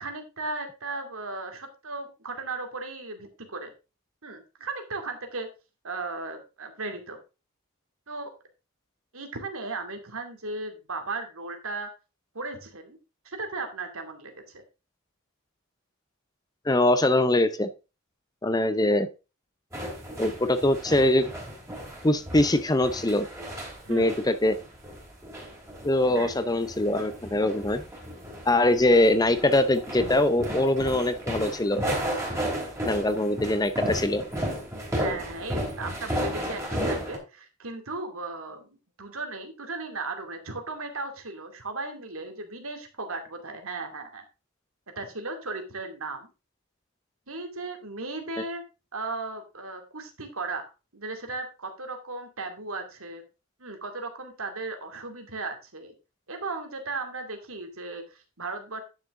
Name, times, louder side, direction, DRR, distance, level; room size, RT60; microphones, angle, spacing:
voice 1, 0.0-3.7 4.2-5.5 5.8-7.2 8.1-8.3 9.1-11.9 12.3-13.0 13.2-14.6 23.8-24.4 26.1-26.4 34.9-38.7 39.0-44.2 45.0-46.3 47.3-48.6 48.9-53.2 53.6-55.9 56.3-58.8, right 3 dB, 70° right, 5 dB, 2.4 m, -36 dB
voice 2, 16.7-17.7 18.4-19.1 20.2-21.3 22.0-23.3 23.9-24.6 25.8-27.8 28.5-31.8 32.8-34.2, left 1 dB, 15° left, 11 dB, 0.6 m, -23 dB
sound 1, 19.7-37.2, equal, 15° right, 3.1 m, -34 dB
10.5 x 6.6 x 3.7 m, 0.29 s
head